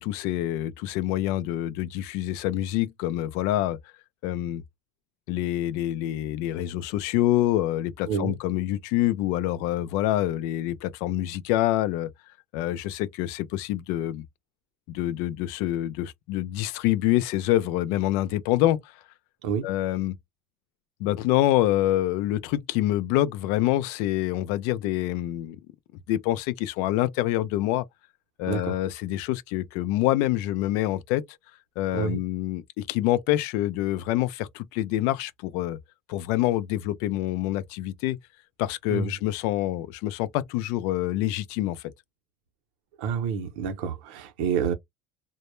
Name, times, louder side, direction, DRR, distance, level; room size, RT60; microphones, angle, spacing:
voice 1, 0.0-3.8 4.2-4.6 5.3-12.1 12.5-14.2 14.9-18.8 19.6-20.2 21.0-25.6 26.1-27.8 28.4-31.2 31.8-35.8 36.1-38.2 38.6-41.8, left 14 dB, 75° left, 0.3 m, -26 dB
voice 2, 8.1-8.4 19.4-19.7 28.5-28.8 31.9-32.2 38.9-39.1 43.0-44.7, right 7 dB, 85° right, 0.6 m, -28 dB
2.1 x 2.0 x 3.0 m
cardioid pair, 140°, 5 cm